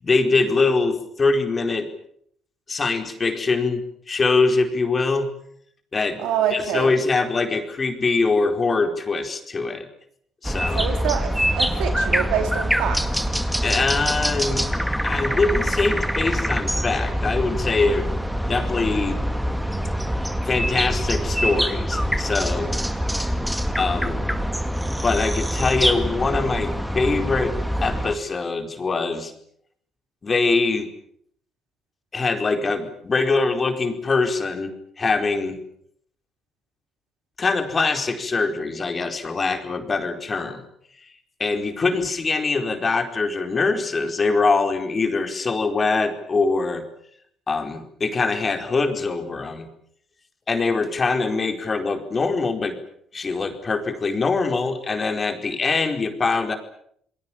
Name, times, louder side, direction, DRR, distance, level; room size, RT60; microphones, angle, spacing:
voice 1, 0.0-1.9 2.7-5.3 5.9-6.2 6.5-9.9 10.4-10.9 13.6-14.7 15.0-18.1 18.4-19.2 20.5-22.7 23.8-24.3 25.0-27.6 27.8-29.3 30.2-30.9 32.1-35.6 37.4-40.6 41.4-46.8 47.5-49.7 50.5-52.8 53.1-56.5, left 3 dB, 35° left, 6 dB, 4.6 m, -23 dB
voice 2, 6.2-6.9 10.7-13.3, right 9 dB, 85° right, 6 dB, 4.3 m, -26 dB
sound 1, 10.4-28.2, equal, 5° right, 2.3 m, -24 dB
29.0 x 21.0 x 7.4 m, 0.66 s
cardioid pair, 85°, 0 cm